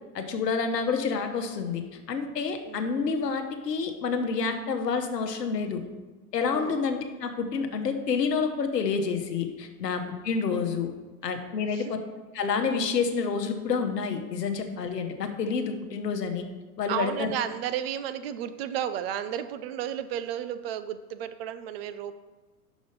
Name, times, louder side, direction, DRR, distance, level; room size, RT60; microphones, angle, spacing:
voice 1, 0.1-1.8 2.1-5.8 6.3-10.9 11.2-11.9 12.3-16.4 16.8-17.3, left 5 dB, 85° left, 5 dB, 1.1 m, -28 dB
voice 2, 11.6-11.9 16.9-22.1, right 10 dB, 40° right, 11 dB, 0.4 m, -33 dB
6.1 x 5.0 x 5.4 m, 1.3 s
hypercardioid pair, 100°, 48 cm